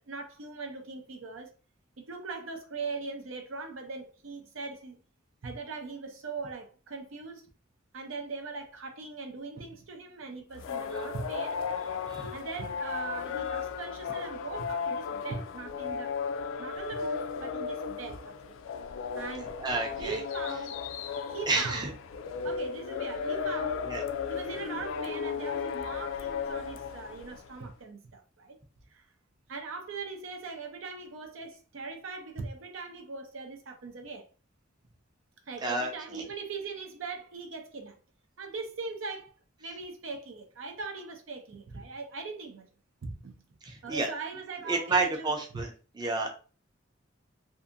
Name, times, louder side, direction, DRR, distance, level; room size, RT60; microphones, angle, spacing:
voice 1, 0.1-1.5 2.0-5.0 5.4-7.5 7.9-11.6 12.1-16.2 16.6-18.6 19.2-19.6 20.0-20.8 21.3-21.9 22.4-23.9 24.3-28.6 28.9-29.0 29.5-34.3 35.5-38.0 38.4-39.3 39.6-42.7 43.0-43.4 43.8-45.6, right 4 dB, 80° right, 0.6 m, -40 dB
sound 1, 10.5-27.5, left 6 dB, 80° left, 0.3 m, -35 dB
voice 2, 19.6-20.2 21.5-21.9 23.8-24.0 35.6-36.2 43.6-44.1 44.7-45.7 46.0-46.3, right 3 dB, 20° right, 0.5 m, -30 dB
2.7 x 2.5 x 2.5 m
head